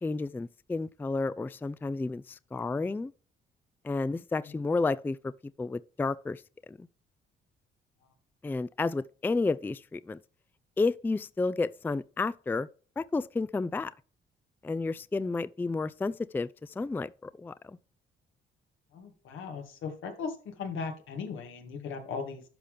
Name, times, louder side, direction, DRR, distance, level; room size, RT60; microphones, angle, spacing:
voice 1, 0.0-3.1 3.8-5.3 5.6-6.4 6.7-6.9 8.4-10.2 10.8-12.7 13.0-13.9 14.6-17.8, left 3 dB, 10° left, 0.3 m, -31 dB
voice 2, 18.9-22.4, left 5 dB, 85° left, 2.1 m, -38 dB
11.5 x 5.6 x 3.3 m
cardioid pair, 90°, 20 cm